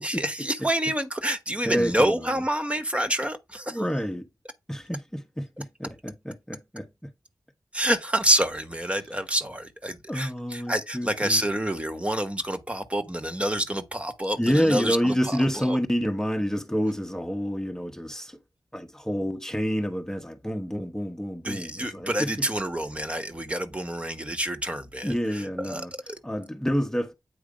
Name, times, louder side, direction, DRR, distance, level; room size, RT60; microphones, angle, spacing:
voice 1, 0.0-3.8 7.7-15.8 21.4-26.2, right 1 dB, 20° right, 1.4 m, -28 dB
voice 2, 1.6-2.3 3.7-4.3 4.7-7.1 10.1-11.4 14.4-18.4 18.7-22.5 25.0-25.9 26.2-27.1, equal, 10° left, 1.1 m, -28 dB
8.6 x 3.2 x 5.1 m
cardioid pair, 45°, 7 cm